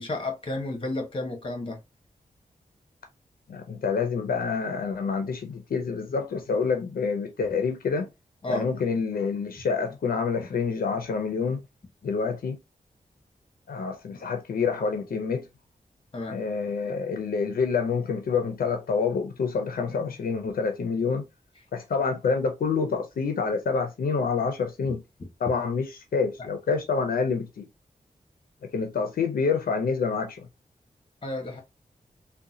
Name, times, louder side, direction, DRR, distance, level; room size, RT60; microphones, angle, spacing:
voice 1, 0.0-1.8 8.4-8.7 16.1-16.4 31.2-31.6, left 2 dB, 35° left, 1.2 m, -32 dB
voice 2, 3.5-8.1 8.5-11.6 12.0-12.6 13.7-15.4 16.3-21.2 21.7-25.0 25.4-27.7 28.7-30.4, left 5 dB, 90° left, 0.6 m, -27 dB
3.7 x 2.3 x 2.7 m
wide cardioid pair, 85°, 15 cm